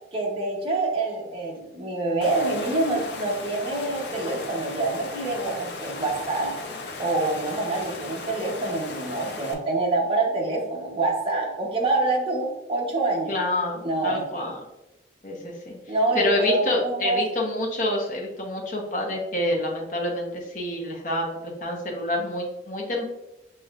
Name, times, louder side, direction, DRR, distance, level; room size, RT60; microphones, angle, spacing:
voice 1, 0.1-6.5 7.0-13.4 13.8-14.5 15.9-17.2, right 2 dB, 30° right, -3 dB, 0.9 m, -26 dB
Water, 2.2-9.5, left 3 dB, 70° left, 0.6 m, -36 dB
voice 2, 13.3-14.6 15.2-23.0, left 1 dB, 45° left, -1 dB, 0.9 m, -28 dB
6.5 x 3.0 x 2.4 m, 0.94 s
head